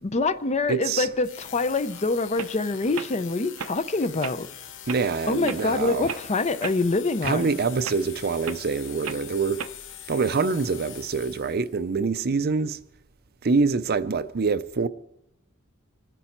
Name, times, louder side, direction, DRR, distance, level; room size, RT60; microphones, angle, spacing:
voice 1, 0.0-4.5 5.3-7.5, left 3 dB, 30° left, 0.5 m, -25 dB
voice 2, 0.7-1.1 4.9-6.1 7.2-9.6 10.1-12.8 13.4-14.9, right 4 dB, 45° right, 0.5 m, -25 dB
sound 1, 1.2-11.8, left 10 dB, 60° left, 0.8 m, -43 dB
sound 2, 1.9-2.0 2.4-2.5 2.9-3.1 3.6-3.8 4.2-4.4 4.9-5.0 5.5-5.7 6.1-6.2 6.6-6.8 7.2-7.4 7.8-8.0 8.4-8.6 9.0-9.2 9.6-9.8, right 7 dB, 85° right, 0.7 m, -35 dB
25.5 x 9.9 x 4.5 m
head